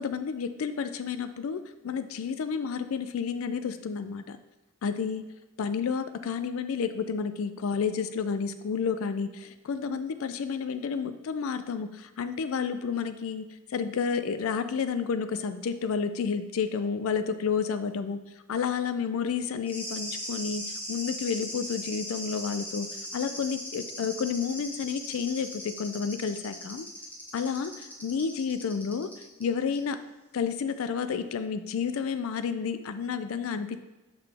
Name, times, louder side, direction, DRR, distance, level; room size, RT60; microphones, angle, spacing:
voice 1, 0.0-4.4 4.8-5.3 5.6-13.4 13.7-18.2 18.5-26.9 27.3-29.1 29.4-30.0 30.3-33.8, left 6 dB, 70° left, 10 dB, 0.4 m, -30 dB
sound 1, 19.7-29.4 29.8-29.9, equal, 5° left, 1.0 m, -39 dB
6.7 x 5.8 x 3.4 m, 1.1 s
head